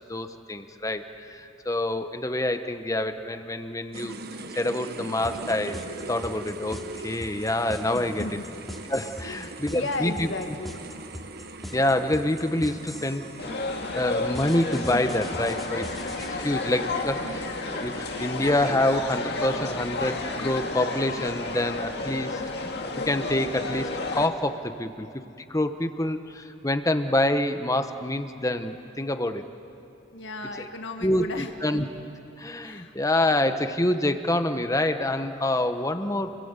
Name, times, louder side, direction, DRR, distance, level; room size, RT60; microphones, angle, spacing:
voice 1, 0.1-4.1 4.5-5.8 6.1-8.3 8.9-10.3 11.7-13.3 13.9-15.9 16.3-22.4 23.0-25.1 25.4-29.4 30.6-30.7 31.0-31.8 32.4-36.3, left 1 dB, 15° left, 8 dB, 1.1 m, -26 dB
sound 1, 3.9-19.0, right 2 dB, 55° right, 1.2 m, -41 dB
sound 2, 5.2-13.2 14.3-16.3, equal, ahead, 2.7 m, -40 dB
voice 2, 7.9-8.5 9.2-10.8 30.1-31.9 32.6-32.9 33.4-33.5, left 2 dB, 75° left, 5 dB, 1.7 m, -35 dB
sound 3, 13.4-24.3, left 3 dB, 60° left, 2.0 m, -31 dB
29.5 x 21.5 x 8.2 m, 2.7 s
head